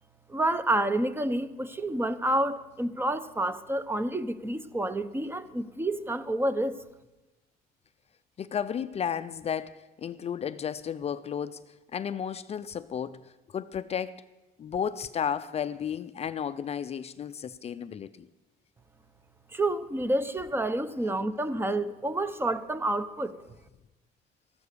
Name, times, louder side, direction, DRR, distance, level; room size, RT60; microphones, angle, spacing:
voice 1, 0.3-6.8 19.5-23.3, right 1 dB, 15° right, 0.9 m, -29 dB
voice 2, 8.4-11.6 11.9-14.2 14.6-18.3, left 8 dB, 40° left, 0.5 m, -33 dB
14.0 x 12.0 x 6.7 m
cardioid pair, 110°, 17 cm